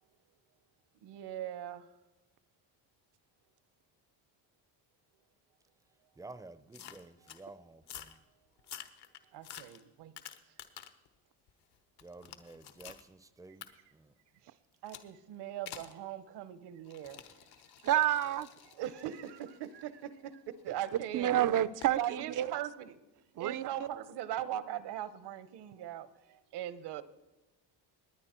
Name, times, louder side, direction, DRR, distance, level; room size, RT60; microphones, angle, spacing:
voice 1, 1.0-1.9 9.3-10.1 14.4-14.5 14.8-17.3 18.7-21.5 21.9-23.0 23.4-27.0, right 11 dB, 65° right, 1.0 m, -40 dB
voice 2, 6.2-8.2 12.0-13.7 13.9-14.1, right 2 dB, 10° right, 0.6 m, -51 dB
sound 1, 6.7-7.4 7.8-8.2 8.6-11.1 11.5-13.0 13.6-13.7 14.9-15.1 15.7-16.0 16.8-20.8 21.8-22.0, left 10 dB, 60° left, 1.2 m, -50 dB
voice 3, 17.8-18.5 21.1-22.5 23.4-23.7, right 12 dB, 45° right, 0.6 m, -29 dB
19.0 x 9.6 x 4.4 m
cardioid pair, 100°, 44 cm